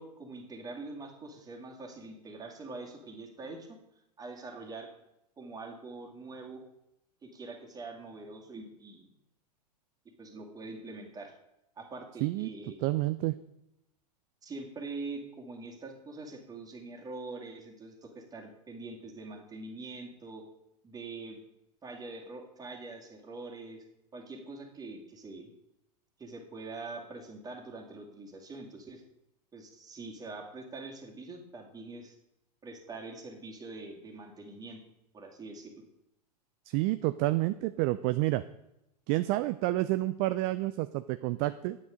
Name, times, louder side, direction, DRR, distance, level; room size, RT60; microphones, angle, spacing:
voice 1, 0.0-3.8 4.2-4.9 5.4-6.6 7.2-9.1 10.0-11.4 11.8-12.8 14.4-20.5 20.8-21.4 21.8-23.8 24.1-25.5 26.2-29.0 29.5-32.1 32.6-34.8 35.1-35.9, right 3 dB, 20° right, 1 dB, 2.2 m, -44 dB
voice 2, 12.8-13.3 36.7-38.4 39.1-41.8, right 18 dB, 40° right, 12 dB, 0.4 m, -29 dB
9.7 x 8.5 x 5.1 m, 0.85 s
figure-of-eight pair, 95°, 21 cm